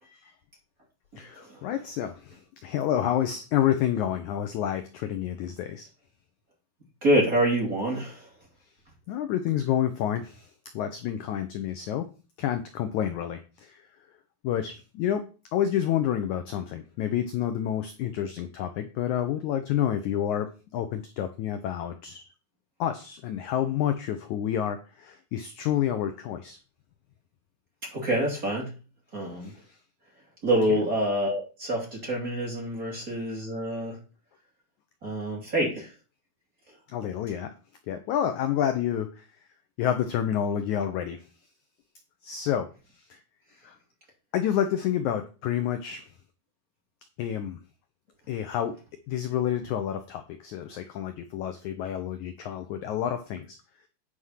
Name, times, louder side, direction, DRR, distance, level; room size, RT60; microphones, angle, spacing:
voice 1, 1.2-5.9 9.1-10.5 10.7-12.1 12.4-13.8 14.4-15.2 15.5-22.2 22.8-26.6 29.4-29.6 30.7-30.8 36.9-37.5 37.9-39.3 39.8-41.2 42.2-42.7 43.1-43.2 43.6-43.7 44.3-46.1 47.2-47.6 48.3-48.7 49.1-53.6, left 10 dB, 75° left, 8 dB, 1.8 m, -29 dB
voice 2, 7.0-8.3 27.9-28.7 29.1-29.5 30.4-34.0 35.0-35.9, right 1 dB, 25° right, -1 dB, 2.6 m, -26 dB
9.5 x 4.9 x 5.7 m, 0.33 s
omnidirectional pair, 4.3 m